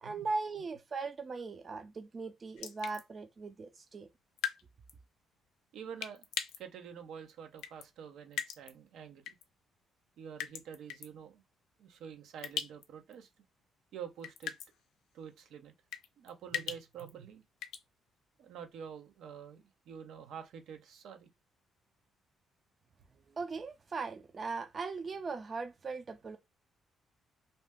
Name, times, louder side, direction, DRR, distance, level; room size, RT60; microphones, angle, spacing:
voice 1, 0.0-4.1 23.3-26.4, right 4 dB, 40° right, 0.4 m, -39 dB
sound 1, 2.6-3.0 4.4-4.6 4.9-5.0 6.0-6.6 7.6-7.9 8.3-8.7 9.3-9.4 10.4-11.1 12.4-12.9 13.1-13.2 14.2-14.7 15.9-17.1 17.6-17.8, left 9 dB, 85° left, 0.4 m, -38 dB
voice 2, 5.7-6.3 6.6-9.4 10.2-11.4 11.8-13.3 13.9-14.5 15.1-15.7 16.2-17.4 18.4-21.3, right 8 dB, 80° right, 0.6 m, -47 dB
2.7 x 2.1 x 3.4 m
cardioid pair, 90°, 0 cm